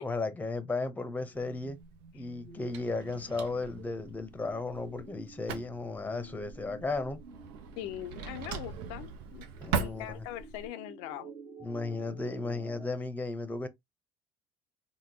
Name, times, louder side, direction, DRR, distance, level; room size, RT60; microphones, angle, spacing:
voice 1, 0.0-1.8 2.1-7.2 9.6-10.2 11.6-13.7, left 3 dB, 15° left, 0.7 m, -35 dB
sound 1, 0.8-12.9, right 4 dB, 45° right, 1.2 m, -52 dB
Drawer open or close, 1.3-10.7, right 6 dB, 85° right, 0.5 m, -41 dB
voice 2, 7.8-9.5 9.7-11.3, left 13 dB, 80° left, 0.4 m, -41 dB
3.6 x 2.2 x 2.8 m
supercardioid pair, 85°, 12 cm